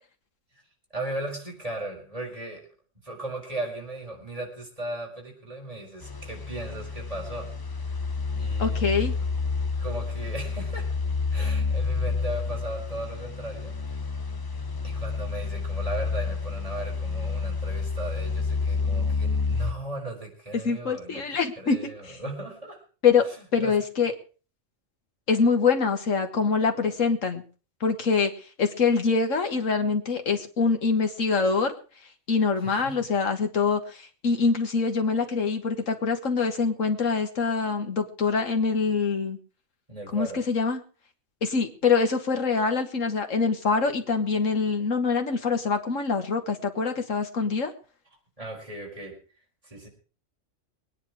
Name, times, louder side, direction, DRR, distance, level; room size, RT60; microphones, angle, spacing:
voice 1, 0.9-2.6 3.0-7.5 8.4-9.1 9.8-10.9 11.3-13.8 14.8-21.2 21.6-22.8 23.6-23.8 32.6-33.0 39.9-40.4 48.4-49.1 49.6-49.9, right 2 dB, 25° right, -1 dB, 4.8 m, -37 dB
sound 1, 6.0-19.7, left 4 dB, 20° left, 0.7 m, -29 dB
voice 2, 8.6-9.1 20.6-21.8 22.1-22.2 23.0-23.2 23.5-24.1 25.3-27.4 27.8-28.3 28.6-31.7 32.3-39.4 40.1-40.8 41.4-47.7, left 5 dB, 85° left, 6 dB, 2.0 m, -24 dB
21.5 x 9.9 x 4.8 m, 0.38 s
omnidirectional pair, 1.3 m